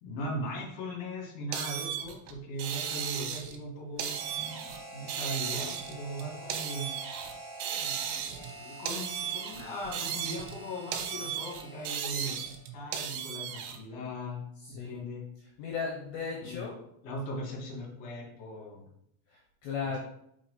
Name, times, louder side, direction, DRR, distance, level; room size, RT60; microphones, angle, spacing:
voice 1, 0.0-7.2 7.7-12.4 12.7-14.4 14.7-15.2 16.5-16.7 17.0-18.9 19.8-20.0, equal, 50° left, -3 dB, 2.1 m, -39 dB
sound 1, 1.5-3.6 4.0-4.8 5.1-7.3 7.6-8.5 8.9-10.6 10.9-13.8, right 9 dB, 80° right, 2.9 m, -36 dB
Harmonica, 4.0-12.7, right 2 dB, 10° right, 1.3 m, -47 dB
voice 2, 14.6-15.0 15.6-16.8 19.3-20.0, left 5 dB, 75° left, -1 dB, 2.7 m, -36 dB
6.0 x 5.4 x 4.2 m, 0.74 s
omnidirectional pair, 5.9 m